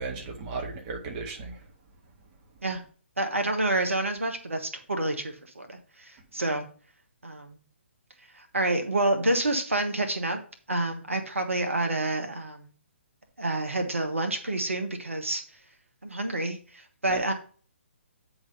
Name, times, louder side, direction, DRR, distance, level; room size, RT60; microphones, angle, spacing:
voice 1, 0.0-1.6 17.1-17.3, right 4 dB, 35° right, 2 dB, 1.8 m, -36 dB
voice 2, 3.2-6.7 7.2-7.6 8.3-10.4 10.7-12.7 13.4-15.4 16.0-17.3, right 2 dB, 85° right, 5 dB, 1.5 m, -28 dB
9.0 x 3.9 x 5.5 m, 0.40 s
figure-of-eight pair, 135°, 7 cm